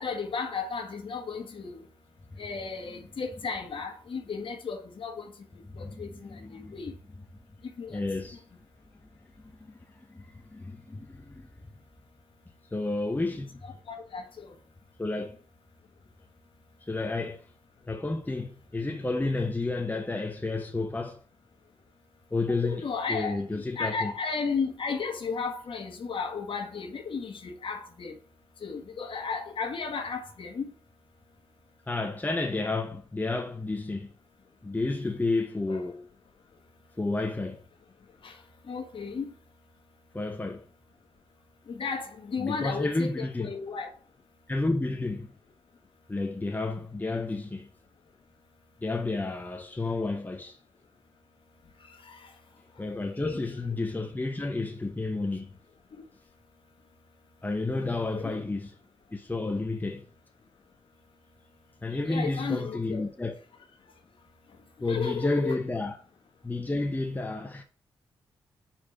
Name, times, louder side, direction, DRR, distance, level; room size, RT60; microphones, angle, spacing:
voice 1, 0.0-1.8 2.4-5.3 5.8-6.9 7.8-8.0 13.9-14.5 22.5-28.2 28.6-30.7 35.7-35.9 38.2-38.3 38.7-39.3 41.7-43.9 51.9-52.3 53.2-53.7 57.9-58.4 61.9-63.0 64.9-65.6, left 5 dB, 55° left, 1.5 m, -34 dB
voice 2, 5.7-6.7 7.9-8.4 9.6-9.8 10.1-11.5 12.7-13.7 15.0-15.4 16.8-17.4 17.9-21.2 22.3-24.1 31.9-34.1 34.6-36.1 37.0-37.6 40.1-40.6 42.4-43.6 44.5-45.3 46.1-47.7 48.8-50.6 52.8-55.5 57.4-58.7 59.1-60.0 61.8-63.4 64.8-66.0 66.4-67.6, left 2 dB, 15° left, 0.8 m, -31 dB
4.8 x 4.3 x 5.7 m
supercardioid pair, 50°, 10 cm